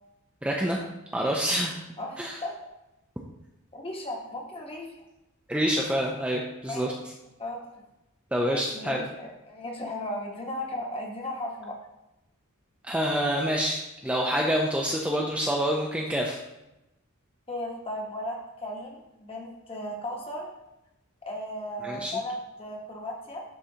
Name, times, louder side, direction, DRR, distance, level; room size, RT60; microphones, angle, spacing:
voice 1, 0.4-0.8 1.1-1.7 2.2-2.4 5.5-6.9 8.3-9.0 12.8-16.4 21.8-22.1, equal, 5° right, -2 dB, 0.4 m, -27 dB
voice 2, 2.0-2.5 3.7-5.0 6.6-6.9 7.4-7.6 8.5-11.8 17.5-20.5 21.2-23.4, left 1 dB, 25° left, 0 dB, 1.0 m, -36 dB
11.0 x 3.7 x 2.8 m, 0.94 s
head